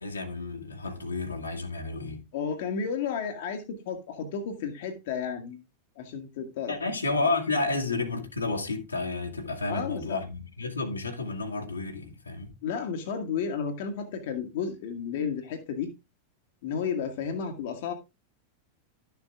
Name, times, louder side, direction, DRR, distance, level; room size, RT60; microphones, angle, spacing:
voice 1, 0.0-2.2 6.7-12.5, left 3 dB, 80° left, 1.9 m, -31 dB
voice 2, 2.3-5.6 6.0-6.7 7.6-7.7 9.7-10.2 12.6-15.9 16.6-17.9, left 6 dB, 55° left, 1.5 m, -32 dB
12.0 x 6.9 x 3.5 m
figure-of-eight pair, 90°, 0 cm